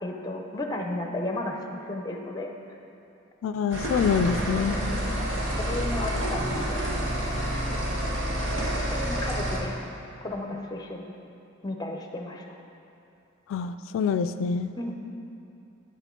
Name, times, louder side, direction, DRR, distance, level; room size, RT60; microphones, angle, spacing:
voice 1, 0.0-2.5 4.7-4.9 5.6-7.6 8.9-9.8 10.2-11.2 11.6-12.6 14.8-15.1, left 1 dB, 20° left, 2 dB, 0.7 m, -34 dB
voice 2, 3.4-4.7 13.5-14.7, left 6 dB, 85° left, 10 dB, 0.3 m, -26 dB
sound 1, 3.7-9.6, equal, 75° right, 1.4 m, -28 dB
11.5 x 5.8 x 3.8 m, 2.7 s
head